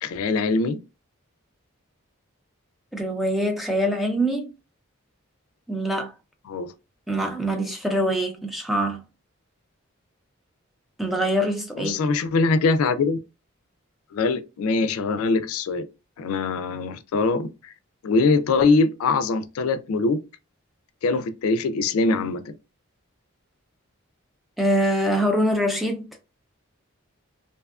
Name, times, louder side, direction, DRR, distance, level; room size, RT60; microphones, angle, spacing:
voice 1, 0.0-0.8 6.5-6.7 11.8-13.2 14.1-15.9 16.2-17.7 18.0-20.2 21.0-22.5, left 3 dB, 80° left, 0.3 m, -22 dB
voice 2, 2.9-4.5 5.7-6.1 7.1-9.0 11.0-12.0 24.6-26.1, equal, ahead, 0.3 m, -24 dB
2.6 x 2.3 x 2.3 m
head